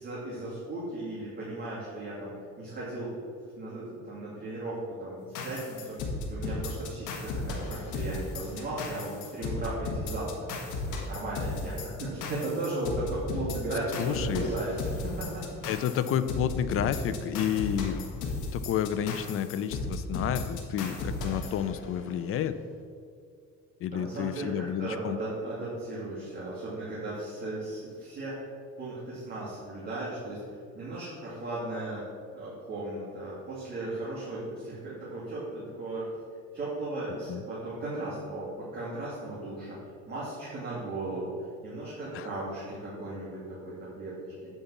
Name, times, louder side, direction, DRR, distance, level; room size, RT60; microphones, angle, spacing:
voice 1, 0.0-3.1 3.6-10.3 10.6-14.9 15.2-15.4 15.9-16.0 23.9-28.4 28.8-32.0 32.3-36.1 36.5-39.8 40.1-44.5, right 2 dB, 30° right, -9 dB, 2.3 m, -36 dB
sound 1, 5.3-22.2, left 3 dB, 85° left, 1.4 m, -35 dB
voice 2, 14.0-14.5 15.7-22.6 23.8-25.2 37.3-37.4 42.1-42.3, left 9 dB, 50° left, 12 dB, 0.5 m, -30 dB
9.1 x 4.0 x 7.1 m, 2.2 s
cardioid pair, 150°, 29 cm